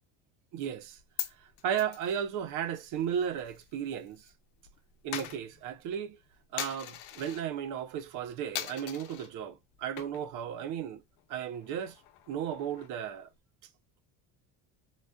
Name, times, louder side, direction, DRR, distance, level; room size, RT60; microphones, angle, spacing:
voice 1, 0.5-1.0 1.6-4.2 5.0-6.2 6.5-11.0 11.3-12.0 12.3-13.3, right 9 dB, 65° right, 0.8 m, -34 dB
Coin (dropping), 0.8-4.3 4.6-7.5 7.9-8.2 8.5-9.3 9.8-10.4 10.7-10.8 11.2-13.1, left 12 dB, 75° left, 0.7 m, -42 dB
4.1 x 2.5 x 2.2 m
cardioid pair, 135°, 33 cm